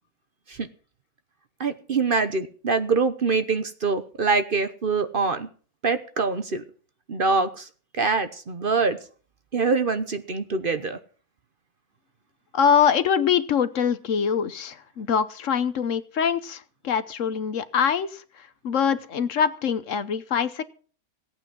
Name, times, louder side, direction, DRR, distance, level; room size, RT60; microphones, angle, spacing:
voice 1, 1.6-5.5 5.8-6.6 7.1-7.7 8.0-9.0 9.5-11.0, right 4 dB, 45° right, 1.0 m, -24 dB
voice 2, 12.5-18.2 18.6-20.6, left 7 dB, 65° left, 1.2 m, -24 dB
17.0 x 8.9 x 6.0 m
omnidirectional pair, 1.5 m